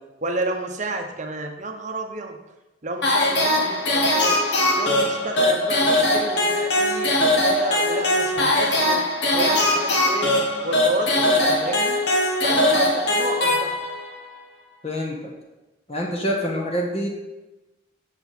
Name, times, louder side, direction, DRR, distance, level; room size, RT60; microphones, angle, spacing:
voice 1, 0.0-2.4 2.8-4.4 4.8-9.1 9.3-10.4 10.6-12.0 12.4-13.8, right 2 dB, 35° right, 4 dB, 0.9 m, -30 dB
sound 1, 3.0-14.1, left 1 dB, 55° left, 1.6 m, -21 dB
voice 2, 14.8-15.3 15.9-17.1, equal, 30° left, 0 dB, 1.4 m, -26 dB
8.5 x 6.8 x 4.3 m, 1.1 s
head